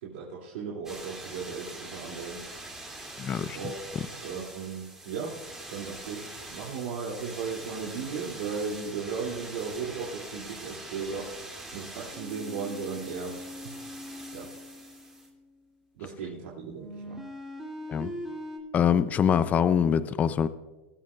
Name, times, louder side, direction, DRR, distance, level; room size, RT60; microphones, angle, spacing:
voice 1, 0.0-2.4 3.5-3.8 4.2-5.4 5.7-11.3 11.7-13.7 14.3-14.5 16.0-17.2, right 5 dB, 75° right, -4 dB, 2.7 m, -36 dB
sound 1, 0.8-15.7 16.3-18.6, right 1 dB, 5° right, 2.6 m, -42 dB
voice 2, 3.2-3.6 17.9-18.1 18.7-20.5, left 8 dB, 25° left, 14 dB, 0.5 m, -24 dB
21.5 x 12.5 x 2.4 m, 1.2 s
supercardioid pair, 135°, 6 cm